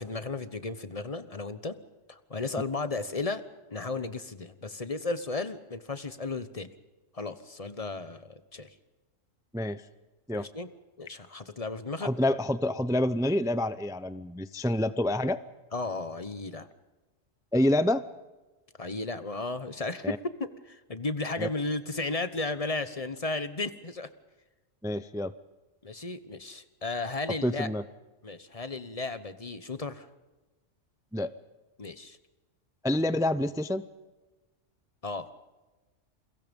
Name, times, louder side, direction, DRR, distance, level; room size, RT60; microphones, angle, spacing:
voice 1, 0.0-1.8 2.1-3.4 3.7-6.7 7.1-8.7 10.3-10.7 11.0-12.1 15.7-16.7 18.8-24.1 25.8-27.7 28.2-30.1 31.8-32.2 35.0-35.3, left 3 dB, 30° left, 12 dB, 1.2 m, -34 dB
voice 2, 12.0-15.4 17.5-18.0 20.0-20.2 21.4-21.5 24.8-25.3 27.4-27.8 31.1-31.3 32.8-33.9, left 1 dB, 5° right, 14 dB, 0.4 m, -27 dB
29.0 x 22.5 x 5.4 m, 1.2 s
omnidirectional pair, 1.3 m